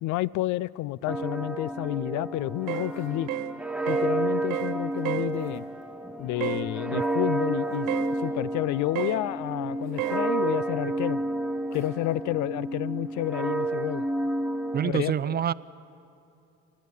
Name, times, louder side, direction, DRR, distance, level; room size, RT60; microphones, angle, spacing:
voice 1, 0.0-3.3 3.9-5.7 6.2-7.9 8.2-11.2 11.7-14.0 14.8-15.4, left 16 dB, 75° left, 21 dB, 0.5 m, -30 dB
sound 1, 1.1-14.9, right 2 dB, 5° right, 0.7 m, -30 dB
Zipper (clothing), 2.3-3.1 4.4-5.8 7.2-8.3 9.8-10.2 11.7-11.9, left 1 dB, 45° left, 5.8 m, -54 dB
sound 2, 2.7-2.9 3.3-3.5 3.9-4.1 4.5-4.8 5.0-5.3 6.4-6.7 7.9-8.1 9.0-9.2 10.0-10.2, right 18 dB, 85° right, 0.9 m, -31 dB
voice 2, 14.7-15.5, right 9 dB, 35° right, 17 dB, 0.4 m, -26 dB
29.0 x 12.5 x 8.5 m, 2.7 s
cardioid pair, 95°, 30 cm